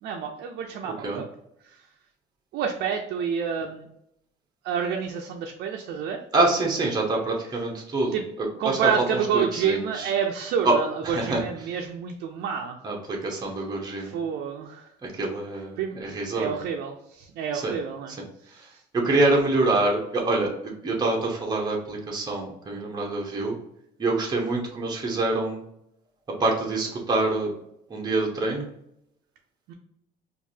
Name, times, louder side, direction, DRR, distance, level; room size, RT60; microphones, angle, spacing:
voice 1, 0.0-1.3 1.6-1.8 2.5-3.9 4.6-6.2 8.1-8.2 8.6-12.8 14.0-14.9 15.8-16.0 16.3-18.2 18.4-18.8 29.7-29.8, right 7 dB, 75° right, 1 dB, 0.5 m, -29 dB
voice 2, 6.3-8.9 9.3-10.1 10.6-10.7 11.0-11.4 12.8-14.1 15.0-16.6 17.5-17.7 18.9-23.5 24.0-25.6 26.4-27.5 27.9-28.7, right 2 dB, 25° right, -1 dB, 0.9 m, -25 dB
4.6 x 2.6 x 2.7 m, 0.78 s
cardioid pair, 110°, 17 cm